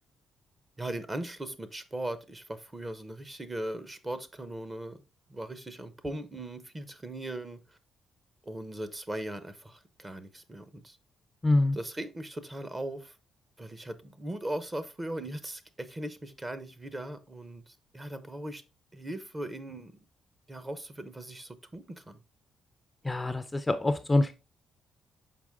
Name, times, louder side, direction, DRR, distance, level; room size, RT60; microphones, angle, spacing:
voice 1, 0.8-5.0 5.3-7.6 8.4-11.0 11.7-13.2 13.6-18.6 18.9-19.9 20.5-22.2, right 1 dB, 20° right, 0.9 m, -39 dB
voice 2, 11.4-11.8 23.0-24.3, left 2 dB, 15° left, 0.5 m, -25 dB
5.9 x 4.6 x 3.6 m
cardioid pair, 90°, 0 cm